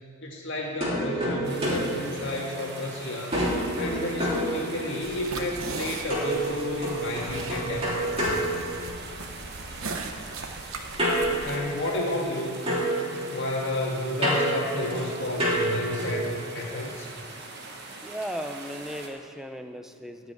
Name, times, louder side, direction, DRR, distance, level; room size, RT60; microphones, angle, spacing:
voice 1, 0.2-3.4 3.8-8.4 11.4-12.6 13.1-17.1, left 1 dB, 55° left, -2 dB, 1.8 m, -31 dB
sound 1, 0.8-2.9 3.3-5.2 6.1-9.3 11.0-12.4 12.7-16.3, right 1 dB, 25° right, 3.4 m, -29 dB
sound 2, 1.4-19.1, right 3 dB, 50° right, 1.5 m, -42 dB
sound 3, 5.0-11.6, right 3 dB, 75° right, 1.0 m, -38 dB
voice 2, 11.1-11.4 18.0-20.3, equal, ahead, 6 dB, 0.5 m, -37 dB
15.5 x 6.0 x 9.1 m, 2.2 s
head